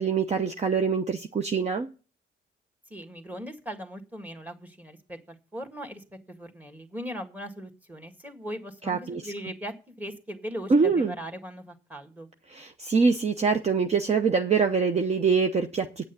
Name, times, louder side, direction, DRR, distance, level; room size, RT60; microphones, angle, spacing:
voice 1, 0.0-1.9 8.9-9.3 10.7-11.1 12.5-16.0, right 5 dB, 35° right, 6 dB, 0.8 m, -24 dB
voice 2, 2.9-12.3, equal, 10° right, 6 dB, 1.8 m, -39 dB
9.0 x 6.2 x 8.3 m, 0.36 s
cardioid pair, 90°, 20 cm